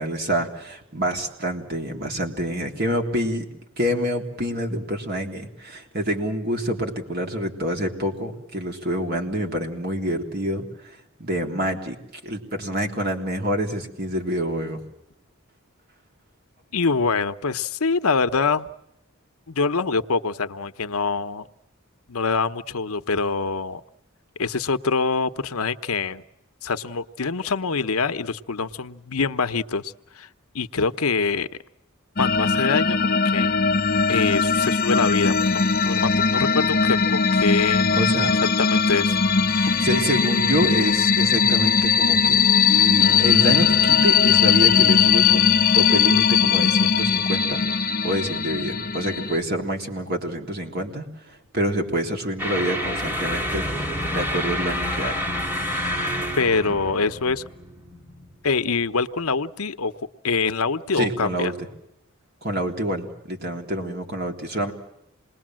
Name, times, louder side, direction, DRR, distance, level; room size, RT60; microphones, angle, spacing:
voice 1, 0.0-3.5 3.8-12.0 12.2-14.8 37.9-38.3 39.5-55.3 56.7-56.8 60.9-61.7 62.4-64.7, equal, 45° right, 3 dB, 3.5 m, -27 dB
voice 2, 16.7-18.7 19.5-21.5 22.1-23.8 24.4-26.2 26.6-30.3 30.5-31.5 32.2-33.5 34.1-37.9 38.6-39.2 56.4-57.4 58.4-59.9 60.2-61.5, left 4 dB, 85° left, 11 dB, 0.9 m, -24 dB
sound 1, 32.2-49.4, left 6 dB, 40° left, 0.8 m, -19 dB
sound 2, 52.4-58.8, equal, 10° right, 2.4 m, -28 dB
27.5 x 21.0 x 7.6 m, 0.81 s
head